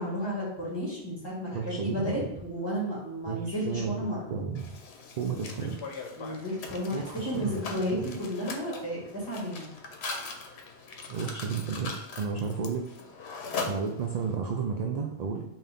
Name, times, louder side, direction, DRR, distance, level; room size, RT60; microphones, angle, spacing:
voice 1, 0.0-4.2 6.2-9.7, equal, 25° left, -5 dB, 1.6 m, -33 dB
voice 2, 1.5-2.2 3.3-3.9 4.3-4.8 5.2-5.8 6.9-7.6 7.9-8.1 11.1-12.9 13.6-15.4, right 5 dB, 55° right, 2 dB, 0.5 m, -32 dB
Mechanisms, 4.5-14.3, left 4 dB, 85° left, 1.0 m, -40 dB
5.6 x 2.6 x 3.5 m, 0.86 s
omnidirectional pair, 1.1 m